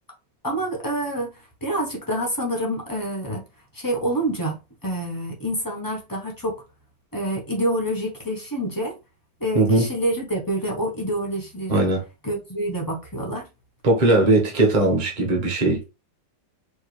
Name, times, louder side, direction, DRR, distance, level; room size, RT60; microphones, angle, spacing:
voice 1, 0.4-3.4 3.7-6.6 7.1-9.0 9.4-11.9 12.2-13.5, right 1 dB, 20° left, 0.6 m, -27 dB
voice 2, 9.5-9.9 11.7-12.0 13.8-15.9, right 2 dB, 25° right, 1.1 m, -19 dB
4.6 x 2.8 x 3.2 m
omnidirectional pair, 2.1 m